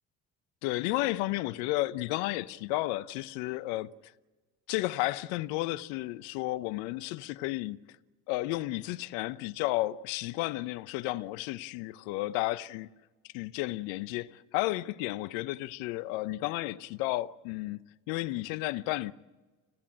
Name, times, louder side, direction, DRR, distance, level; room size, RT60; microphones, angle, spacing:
voice 1, 0.6-3.9 4.7-7.8 8.3-12.9 13.3-17.8 18.1-19.1, left 18 dB, 75° left, 0.8 m, -32 dB
29.5 x 15.5 x 8.8 m
hypercardioid pair, 55°, 41 cm